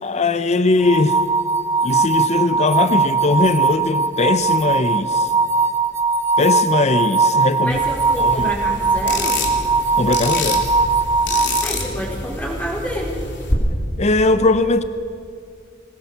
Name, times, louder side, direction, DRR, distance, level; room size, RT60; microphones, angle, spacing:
voice 1, 0.0-1.2 1.8-5.3 6.4-7.8 8.2-8.5 9.9-10.7 14.0-14.8, left 2 dB, 35° left, 12 dB, 0.6 m, -19 dB
sound 1, 0.8-11.6, right 4 dB, 15° right, 1.4 m, -19 dB
voice 2, 7.6-9.4 11.6-13.2, equal, 10° left, -3 dB, 4.5 m, -28 dB
sound 2, 7.7-13.5, left 3 dB, 60° left, 3.0 m, -27 dB
21.5 x 19.0 x 7.0 m, 2.4 s
head